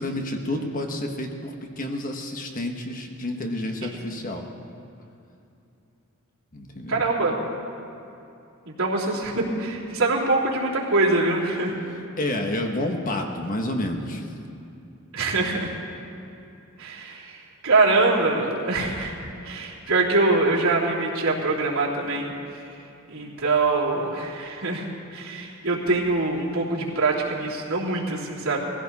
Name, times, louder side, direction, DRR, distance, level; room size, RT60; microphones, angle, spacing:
voice 1, 0.0-4.4 6.5-7.0 12.2-14.3, left 1 dB, 40° left, 3 dB, 1.3 m, -29 dB
voice 2, 6.9-7.3 8.6-11.9 15.1-15.7 16.8-19.1 19.4-22.3 23.1-24.9 25.1-28.6, right 3 dB, 80° right, -6 dB, 3.3 m, -24 dB
20.0 x 15.5 x 4.2 m, 2.7 s
head